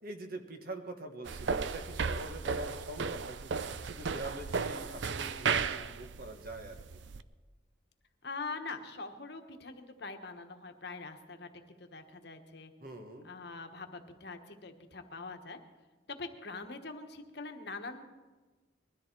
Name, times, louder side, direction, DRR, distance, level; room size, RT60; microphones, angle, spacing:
voice 1, 0.0-7.0 12.8-13.3, right 2 dB, 50° right, 5 dB, 1.4 m, -44 dB
sound 1, 1.3-7.2, right 5 dB, 65° right, 0.5 m, -35 dB
voice 2, 8.2-11.5 11.8-12.7 13.2-15.6 16.1-18.0, left 3 dB, 55° left, 6 dB, 1.2 m, -43 dB
21.0 x 13.0 x 4.5 m, 1.3 s
head